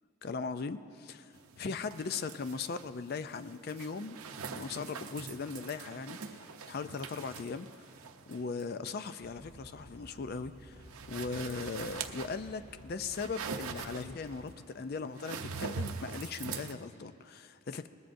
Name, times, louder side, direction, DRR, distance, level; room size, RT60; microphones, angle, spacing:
voice 1, 0.2-4.2 4.5-7.9 8.3-17.9, left 4 dB, 45° left, 11 dB, 0.4 m, -39 dB
sound 1, 1.3-16.7, right 5 dB, 85° right, 0.7 m, -44 dB
sound 2, 9.2-14.5, equal, 25° left, 4.2 m, -54 dB
21.0 x 19.5 x 2.6 m, 2.6 s
head